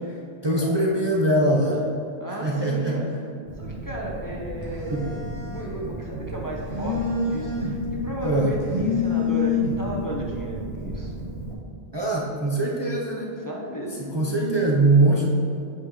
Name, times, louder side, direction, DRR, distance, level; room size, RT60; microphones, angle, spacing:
voice 1, 0.4-1.9 2.4-3.0 4.9-5.1 8.2-8.5 11.9-13.3 14.0-15.2, right 2 dB, 30° right, -3 dB, 0.6 m, -22 dB
voice 2, 2.2-3.1 3.6-11.1 13.3-14.4, right 1 dB, 20° left, -3 dB, 0.7 m, -34 dB
Telephone, 3.5-11.5, left 3 dB, 85° right, 1.5 m, -29 dB
8.2 x 4.7 x 3.8 m, 2.6 s
omnidirectional pair, 1.0 m